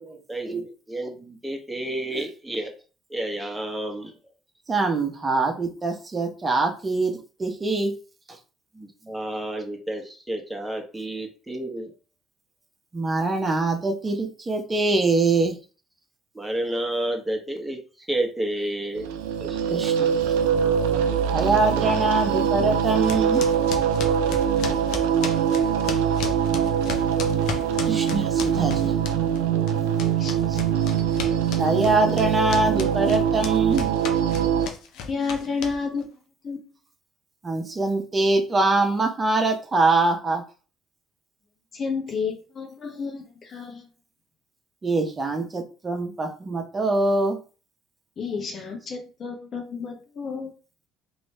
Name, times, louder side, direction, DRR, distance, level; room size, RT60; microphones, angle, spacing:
voice 1, 0.3-2.7 3.1-4.1 8.7-11.9 16.3-19.1 19.4-19.6 20.0-20.1, right 1 dB, 10° right, 1.2 m, -30 dB
voice 2, 4.7-7.9 12.9-15.5 19.7-20.1 21.2-23.4 27.9-28.9 31.5-33.9 37.4-40.4 44.8-47.4, right 3 dB, 30° right, 0.8 m, -23 dB
sound 1, 19.0-34.7, right 8 dB, 80° right, 0.3 m, -23 dB
sound 2, 23.0-29.4 29.7-36.0, left 6 dB, 70° left, 0.6 m, -34 dB
voice 3, 35.0-36.8 41.7-43.9 48.2-50.5, left 5 dB, 45° left, 0.9 m, -31 dB
3.0 x 2.7 x 3.2 m
hypercardioid pair, 65°, 0 cm